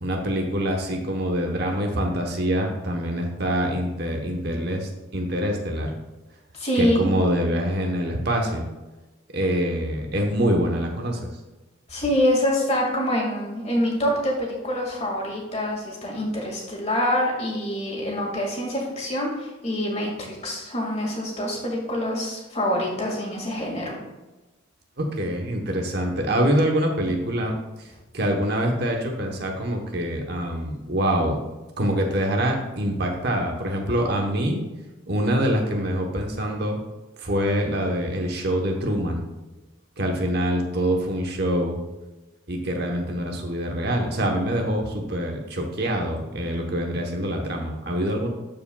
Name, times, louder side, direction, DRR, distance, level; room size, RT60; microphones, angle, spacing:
voice 1, 0.0-5.9 6.8-8.7 9.3-11.3 25.0-27.5 28.1-31.4 31.8-34.6 35.1-36.8 37.2-39.2 40.0-41.8 42.5-48.3, equal, 50° right, 2 dB, 1.0 m, -25 dB
voice 2, 6.5-7.1 11.9-24.0, left 1 dB, 30° left, -2 dB, 1.9 m, -25 dB
12.5 x 4.8 x 2.3 m, 1.1 s
head